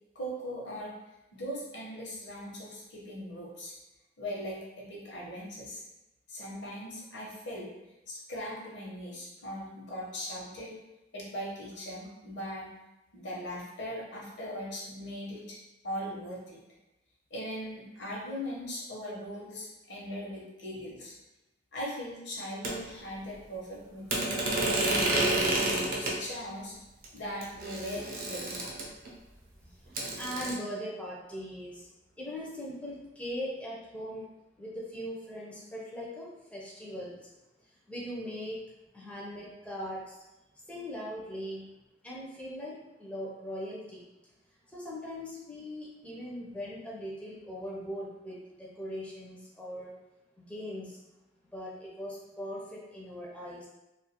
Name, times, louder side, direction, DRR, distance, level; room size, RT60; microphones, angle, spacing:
voice 1, 0.1-1.0 1.3-3.7 4.2-5.8 6.3-7.7 8.1-10.8 11.1-12.7 13.1-15.6 15.8-16.6 17.3-21.2 21.7-26.7 27.1-28.7, equal, 70° left, -4 dB, 0.8 m, -40 dB
sound 1, 22.6-22.7 24.1-26.2 27.0-27.1 27.4-29.1 29.9-30.5, right 2 dB, 50° right, 0.6 m, -29 dB
voice 2, 30.1-31.9 32.2-34.3 34.6-37.3 37.9-38.6 38.9-40.2 40.7-41.7 42.0-42.7 43.0-44.0 44.7-49.9 50.4-51.0 51.4-53.7, equal, 5° left, -6 dB, 0.4 m, -40 dB
2.4 x 2.3 x 2.8 m, 0.98 s
head